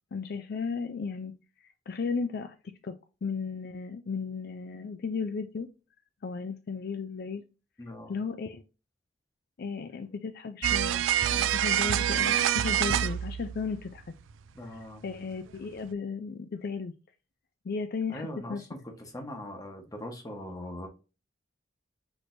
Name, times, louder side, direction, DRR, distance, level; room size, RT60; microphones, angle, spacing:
voice 1, 0.1-1.3 1.6-2.6 2.8-2.9 3.2-5.7 6.2-7.4 8.1-8.6 9.6-14.0 14.7-16.9 17.6-18.6, left 5 dB, 55° left, 0.4 m, -35 dB
voice 2, 7.8-8.1 14.5-15.0 18.1-18.8 19.1-20.9, left 1 dB, 20° left, 1.0 m, -40 dB
sound 1, 10.6-14.0 14.3-14.4 15.1-15.2, right 11 dB, 75° right, 0.3 m, -26 dB
6.1 x 3.3 x 2.6 m
head